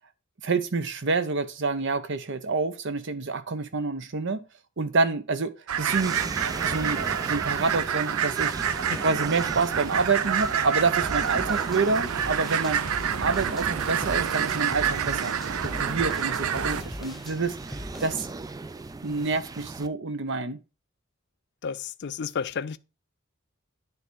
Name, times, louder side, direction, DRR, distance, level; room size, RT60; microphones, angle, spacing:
voice 1, 0.4-4.5 4.8-5.5 5.8-6.2 6.6-8.6 9.0-12.8 13.2-15.4 15.6-18.3 19.0-20.6, right 4 dB, 60° right, 0.8 m, -27 dB
sound 1, 5.7-16.8, right 8 dB, 90° right, 0.5 m, -28 dB
sound 2, 5.9-19.9, right 3 dB, 15° right, 0.3 m, -38 dB
sound 3, 11.0-18.3, equal, ahead, 1.1 m, -40 dB
voice 2, 21.6-22.8, left 6 dB, 55° left, 0.5 m, -32 dB
9.9 x 3.4 x 6.2 m
head